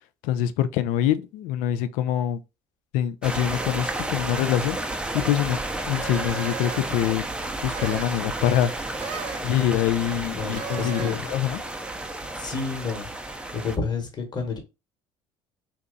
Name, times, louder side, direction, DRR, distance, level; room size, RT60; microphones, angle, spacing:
voice 1, 0.2-2.4 2.9-4.8 5.1-5.6 5.9-7.3 7.6-9.0 9.4-11.6, left 11 dB, 65° left, 0.4 m, -25 dB
sound 1, 3.2-13.8, right 2 dB, 5° right, 0.5 m, -32 dB
sound 2, 6.0-7.0 7.7-8.2 9.0-9.6 10.5-11.3, right 7 dB, 55° right, 0.6 m, -36 dB
voice 2, 10.1-11.2 12.4-13.1 13.5-14.6, left 5 dB, 30° left, 1.3 m, -30 dB
2.8 x 2.3 x 3.8 m
hypercardioid pair, 65°, 14 cm